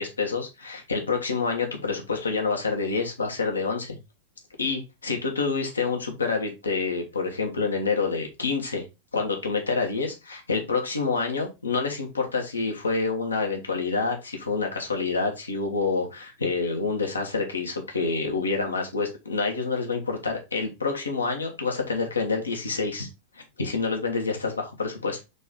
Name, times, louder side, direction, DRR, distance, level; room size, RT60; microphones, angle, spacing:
voice 1, 0.0-4.0 4.6-8.8 9.1-23.1 23.3-25.2, left 4 dB, 75° left, 2 dB, 1.2 m, -27 dB
4.0 x 3.4 x 3.6 m, 0.25 s
figure-of-eight pair, 90°, 0 cm